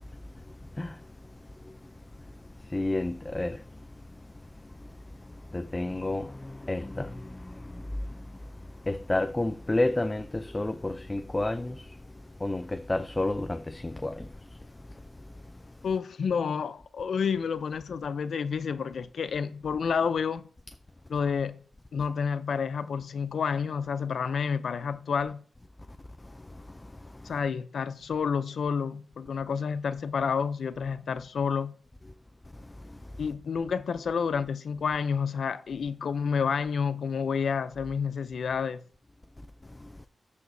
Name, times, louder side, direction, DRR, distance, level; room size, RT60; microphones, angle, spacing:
voice 1, 2.7-3.6 5.5-7.5 8.9-11.7 12.4-14.3, left 2 dB, 20° left, 0.4 m, -30 dB
voice 2, 15.8-20.5 21.1-21.6 21.9-25.4 27.2-31.7 33.2-38.8, left 6 dB, 80° left, 0.5 m, -29 dB
13.5 x 5.0 x 2.7 m
wide cardioid pair, 95°, 0 cm